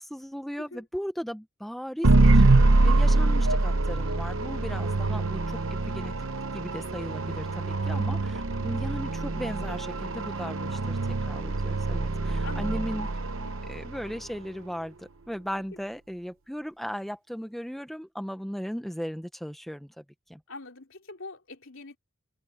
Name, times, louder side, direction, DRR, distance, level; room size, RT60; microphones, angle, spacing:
voice 1, 0.0-6.1 6.5-13.1 13.7-19.9 20.3-20.4, equal, ahead, 0.7 m, -37 dB
sound 1, 2.0-14.2, right 2 dB, 65° right, 0.9 m, -24 dB
voice 2, 12.4-12.9 13.5-13.6 20.5-22.0, left 3 dB, 60° left, 3.2 m, -43 dB
head